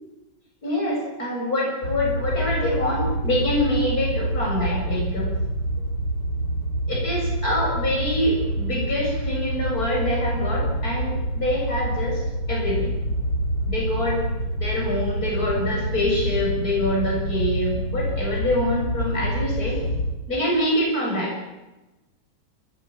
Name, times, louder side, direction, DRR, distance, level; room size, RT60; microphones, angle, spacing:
voice 1, 0.6-5.4 6.9-12.2 12.5-12.9 13.7-14.2 14.6-19.8 20.3-21.4, left 1 dB, 55° left, -1 dB, 7.4 m, -25 dB
sound 1, 1.8-20.1, right 1 dB, 70° left, 3.9 m, -27 dB
23.5 x 19.0 x 8.8 m, 1.0 s
omnidirectional pair, 1.9 m